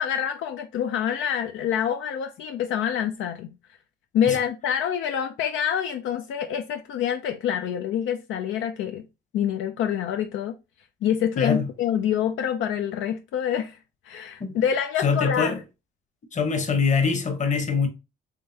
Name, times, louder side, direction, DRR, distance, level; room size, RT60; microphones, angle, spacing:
voice 1, 0.0-3.5 4.1-9.1 9.3-10.5 11.0-13.8 14.1-15.6, left 9 dB, 80° left, 0.5 m, -26 dB
voice 2, 11.4-11.7 14.4-14.6 15.0-15.6 16.3-17.9, left 5 dB, 40° left, 1.0 m, -23 dB
3.7 x 3.3 x 2.7 m
cardioid pair, 90°, 20 cm